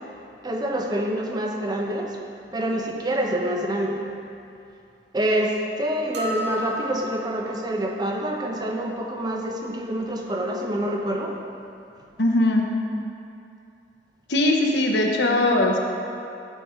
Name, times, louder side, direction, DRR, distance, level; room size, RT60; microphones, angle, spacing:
voice 1, 0.4-2.1 2.5-4.0 5.1-11.3, right 1 dB, 20° right, 0 dB, 0.8 m, -26 dB
sound 1, 6.1-7.5, equal, 75° right, 1.1 m, -31 dB
voice 2, 12.2-12.7 14.3-15.8, left 1 dB, 75° left, 1 dB, 1.0 m, -20 dB
13.0 x 5.3 x 4.4 m, 2.6 s
head